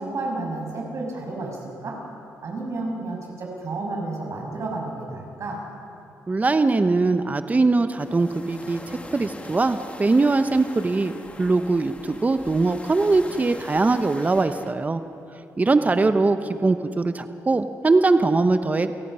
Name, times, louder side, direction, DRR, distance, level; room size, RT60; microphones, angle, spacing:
voice 1, 0.0-2.0 2.4-5.6 15.8-16.0, right 2 dB, 55° right, -1 dB, 6.8 m, -31 dB
voice 2, 6.3-11.1 11.4-15.0 15.6-18.9, right 3 dB, 25° right, 10 dB, 0.9 m, -21 dB
sound 1, 8.0-14.7, left 2 dB, 20° left, 2.0 m, -42 dB
29.0 x 18.0 x 5.6 m, 2.9 s
cardioid pair, 80°, 6 cm